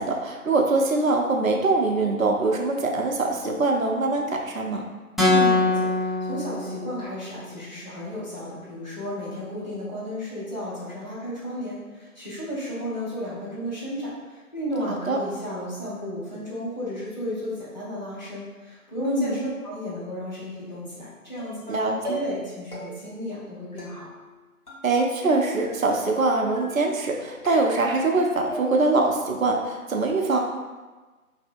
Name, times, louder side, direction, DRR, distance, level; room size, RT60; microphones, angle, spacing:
voice 1, 0.0-4.9 14.9-15.2 19.0-19.4 21.7-22.2 24.8-30.4, right 3 dB, 65° right, 1 dB, 0.6 m, -23 dB
voice 2, 5.2-24.1, equal, 30° left, -10 dB, 0.7 m, -33 dB
sound 1, 5.2-7.3, left 2 dB, ahead, 0.3 m, -23 dB
sound 2, 21.4-21.7 22.0-22.5 22.7-23.2 23.8-24.4 24.7-25.3 25.6-26.2 26.6-27.1 27.5-28.2 28.5-29.0, right 1 dB, 85° left, 1.1 m, -39 dB
2.7 x 2.6 x 2.5 m, 1.3 s
figure-of-eight pair, 155°, 44 cm